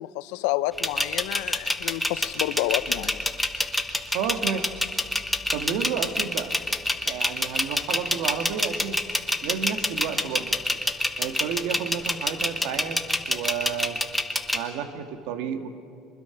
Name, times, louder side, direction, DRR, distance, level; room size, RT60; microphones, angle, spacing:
voice 1, 0.0-3.3, left 16 dB, 90° left, 15 dB, 0.6 m, -29 dB
sound 1, 0.8-14.6, left 1 dB, 5° left, 1.0 m, -26 dB
voice 2, 4.1-4.7 5.5-6.5 7.0-9.0 9.4-10.6 11.2-13.0 13.3-14.0 14.5-15.8, right 8 dB, 75° right, 7 dB, 1.5 m, -31 dB
24.0 x 20.5 x 5.8 m, 2.4 s
cardioid pair, 150°, 0 cm